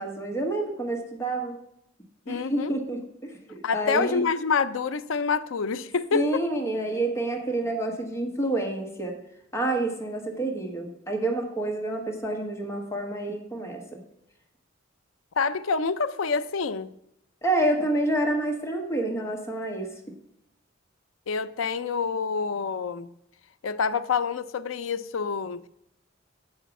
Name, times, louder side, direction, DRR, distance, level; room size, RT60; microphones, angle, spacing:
voice 1, 0.0-1.6 2.3-4.2 6.1-9.2 9.5-14.0 17.4-19.9, right 2 dB, 15° left, 1.2 m, -28 dB
voice 2, 2.3-2.8 3.6-6.4 15.4-16.9 21.3-23.1 23.6-25.7, left 5 dB, 90° left, 0.5 m, -27 dB
8.4 x 5.0 x 7.0 m
head